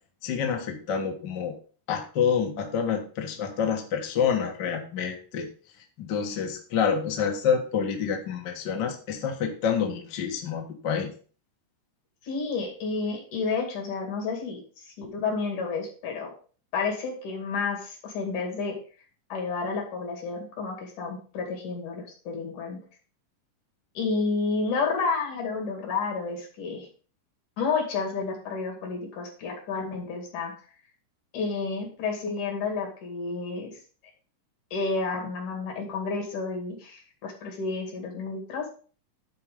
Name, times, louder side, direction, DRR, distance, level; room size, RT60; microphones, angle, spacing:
voice 1, 0.2-1.5 1.9-5.5 6.0-11.1, left 7 dB, 50° left, 2 dB, 1.4 m, -27 dB
voice 2, 12.2-16.3 16.7-18.8 19.3-22.8 24.0-26.9 27.6-30.5 31.3-33.8 34.7-38.7, left 4 dB, 70° left, 1 dB, 3.8 m, -30 dB
10.5 x 4.5 x 5.1 m, 0.40 s
omnidirectional pair, 3.7 m